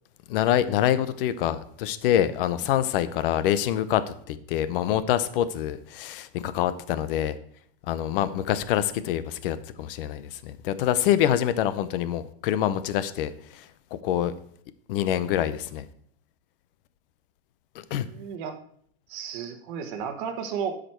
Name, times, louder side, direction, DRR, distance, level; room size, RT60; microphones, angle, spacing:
voice 1, 0.3-7.3 7.9-13.7 14.0-14.3 14.9-15.9 17.7-18.1, left 11 dB, 60° left, 14 dB, 0.7 m, -26 dB
voice 2, 18.0-18.6 19.1-20.8, right 7 dB, 50° right, 7 dB, 1.3 m, -33 dB
12.0 x 5.1 x 4.5 m, 0.63 s
supercardioid pair, 170°, 32 cm